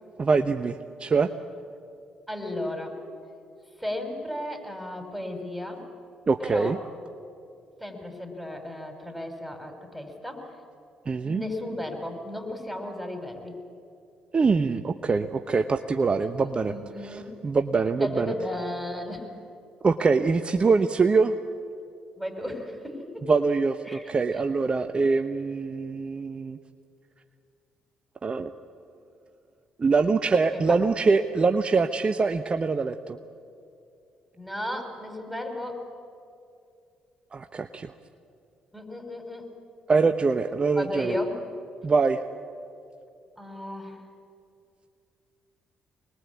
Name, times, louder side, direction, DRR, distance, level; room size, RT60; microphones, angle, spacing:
voice 1, 0.2-1.3 6.3-6.8 11.1-11.4 14.3-16.7 17.0-18.3 19.8-21.3 23.3-26.6 28.2-28.5 29.8-33.2 37.3-37.9 39.9-41.2 41.8-42.2, right 4 dB, 40° right, 8 dB, 0.9 m, -24 dB
voice 2, 2.3-3.0 3.8-5.8 6.4-6.8 7.8-10.5 11.2-13.6 16.4-17.3 18.0-19.3 22.2-23.3 23.9-24.1 30.5-30.8 34.4-35.8 38.7-39.5 40.8-41.4 43.4-44.0, left 1 dB, ahead, 4 dB, 5.7 m, -34 dB
24.5 x 21.0 x 8.5 m, 2.5 s
hypercardioid pair, 50°, 3 cm